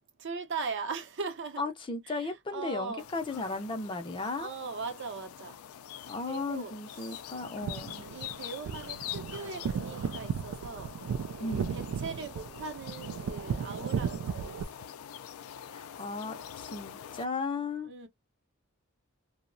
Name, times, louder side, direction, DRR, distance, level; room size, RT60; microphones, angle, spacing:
voice 1, 0.2-1.6 2.1-3.1 4.4-5.6 6.3-7.8 8.1-10.9 11.4-14.9 17.8-18.1, right 4 dB, 60° right, 0.6 m, -40 dB
voice 2, 1.6-4.5 6.1-8.1 11.4-11.8 15.7-17.9, left 3 dB, 25° left, 0.5 m, -35 dB
sound 1, 3.0-17.3, left 10 dB, 85° left, 0.3 m, -45 dB
sound 2, 7.4-14.6, right 7 dB, 90° right, 0.3 m, -35 dB
2.7 x 2.0 x 2.5 m
head